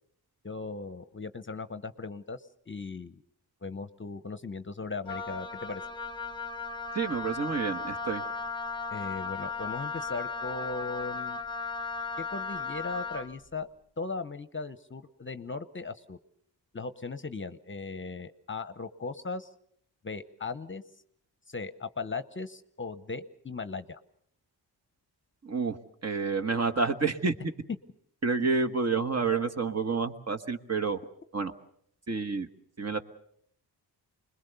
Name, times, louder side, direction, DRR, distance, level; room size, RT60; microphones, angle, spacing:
voice 1, 0.4-2.4 2.7-3.2 3.6-5.8 8.9-11.4 12.2-13.7 14.0-16.2 16.7-19.5 20.0-20.8 21.5-24.0, left 4 dB, 30° left, 12 dB, 0.9 m, -38 dB
Wind instrument woodwind instrument, 5.0-13.3, left 4 dB, 10° left, 1.1 m, -36 dB
voice 2, 6.9-8.2 25.4-25.8 26.0-27.3 28.2-31.0 31.3-31.5 32.1-32.5 32.8-33.0, right 4 dB, 40° right, 7 dB, 1.5 m, -29 dB
26.0 x 21.0 x 6.8 m, 0.69 s
cardioid pair, 80°, 41 cm